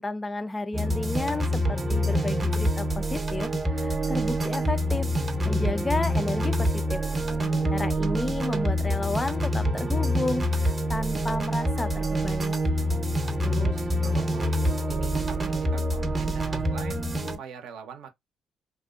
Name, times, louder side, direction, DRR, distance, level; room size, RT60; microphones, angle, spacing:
voice 1, 0.0-5.1 5.5-7.0 7.7-12.6, left 2 dB, 25° left, 0.4 m, -32 dB
sound 1, 0.7-17.4, equal, 30° right, 0.7 m, -26 dB
voice 2, 7.6-7.9 13.5-18.1, right 7 dB, 70° right, 0.6 m, -44 dB
2.6 x 2.0 x 2.4 m
hypercardioid pair, 55°, 0 cm